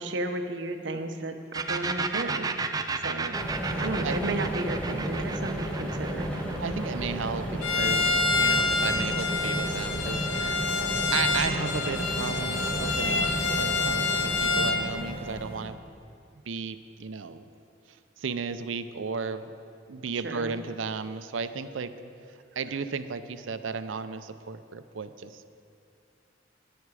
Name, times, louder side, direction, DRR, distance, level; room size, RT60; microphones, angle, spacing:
voice 1, 0.0-3.4 3.8-6.3 20.1-20.6, right 2 dB, 65° right, 7 dB, 0.9 m, -34 dB
sound 1, 1.5-9.1, right 4 dB, 20° right, 0.4 m, -33 dB
sound 2, 3.3-15.7, equal, 5° left, 1.4 m, -33 dB
voice 2, 6.6-10.6 11.1-15.8 16.5-17.5 17.9-19.5 19.9-21.9 22.6-25.5, right 5 dB, 85° right, 11 dB, 0.6 m, -34 dB
Bowed string instrument, 7.6-14.9, left 3 dB, 85° left, 0.9 m, -27 dB
14.5 x 10.0 x 4.8 m, 2.5 s
head